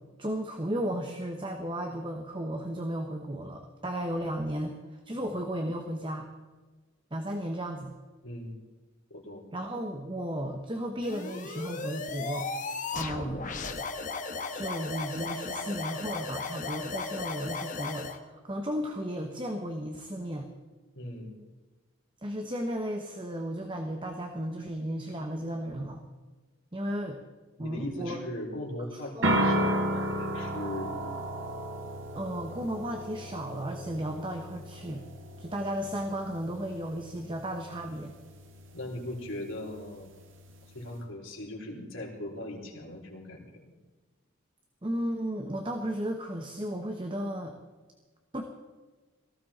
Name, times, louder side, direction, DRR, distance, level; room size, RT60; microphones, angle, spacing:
voice 1, 0.2-6.3 7.1-7.9 9.5-12.5 12.9-13.5 14.5-20.5 22.2-26.0 26.7-27.2 27.6-28.2 28.9-29.4 32.1-35.0 35.4-38.1 44.8-47.6 48.3-48.4, right 1 dB, 25° right, 4 dB, 1.1 m, -34 dB
voice 2, 9.1-9.4 20.9-21.3 27.6-31.0 38.7-40.1 40.7-43.7, left 1 dB, 80° left, -1 dB, 3.9 m, -39 dB
sound 1, 11.0-18.2, left 4 dB, 40° left, 1.2 m, -36 dB
sound 2, 29.2-41.0, right 1 dB, 75° right, 1.9 m, -34 dB
18.0 x 15.0 x 4.3 m, 1.3 s
head